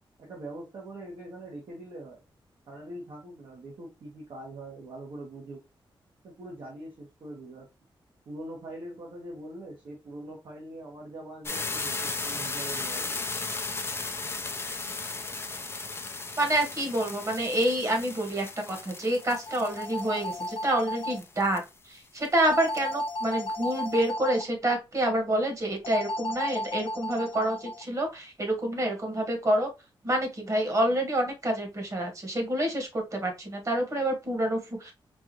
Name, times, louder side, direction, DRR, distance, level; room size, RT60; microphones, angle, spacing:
voice 1, 0.2-2.2 2.7-5.6 6.2-7.7 8.2-13.2, right 1 dB, 65° right, -3 dB, 1.4 m, -42 dB
sound 1, 11.5-21.7 22.3-22.4 22.5-22.9, left 3 dB, 30° left, 0.6 m, -36 dB
voice 2, 16.4-21.6 21.9-29.7 30.0-34.9, right 1 dB, 35° right, 3 dB, 1.5 m, -28 dB
sound 2, 19.2-21.2 22.4-24.4 25.8-27.8, left 1 dB, 70° left, 0.8 m, -34 dB
4.7 x 2.6 x 3.0 m, 0.25 s
wide cardioid pair, 130°, 9 cm